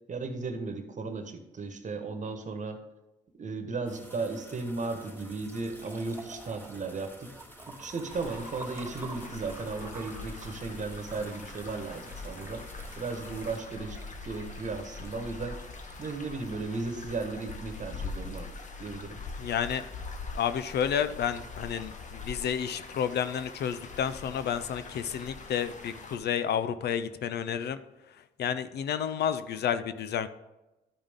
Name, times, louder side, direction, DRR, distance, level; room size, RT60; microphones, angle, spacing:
voice 1, 0.1-2.8 3.4-7.3 7.7-12.6 12.9-15.6 16.0-18.5 18.8-19.2, right 3 dB, 40° right, 7 dB, 1.3 m, -35 dB
sound 1, 3.9-13.6, equal, 10° left, 1.9 m, -51 dB
Liquid, 5.1-17.2, right 2 dB, 15° right, 1.0 m, -50 dB
sound 2, 8.1-26.2, left 3 dB, 40° left, 1.2 m, -43 dB
voice 2, 19.4-19.8 20.3-27.8 28.4-30.3, left 8 dB, 60° left, 13 dB, 0.5 m, -30 dB
12.0 x 5.1 x 3.7 m, 1.0 s
supercardioid pair, 65°, 19 cm